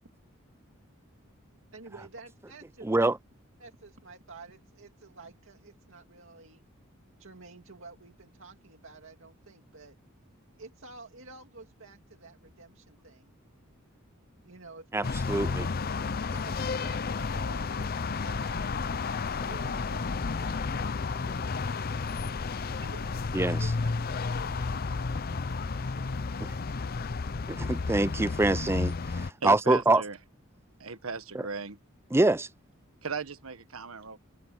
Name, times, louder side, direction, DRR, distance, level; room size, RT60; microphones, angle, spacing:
voice 1, 1.7-3.1 3.6-6.7 7.2-10.0 10.6-13.4 14.4-15.1 16.3-17.9 18.2-18.6 19.4-22.3 22.8-26.3, right 3 dB, 65° right, 2.5 m, -51 dB
voice 2, 2.8-3.2 14.9-15.7 23.3-23.7 27.5-30.0 32.1-32.5, right 2 dB, 10° right, 0.5 m, -25 dB
sound 1, 15.0-29.3, left 4 dB, 45° left, 0.6 m, -32 dB
voice 3, 29.4-30.2 30.8-31.8 33.0-34.2, right 4 dB, 90° right, 1.5 m, -36 dB
head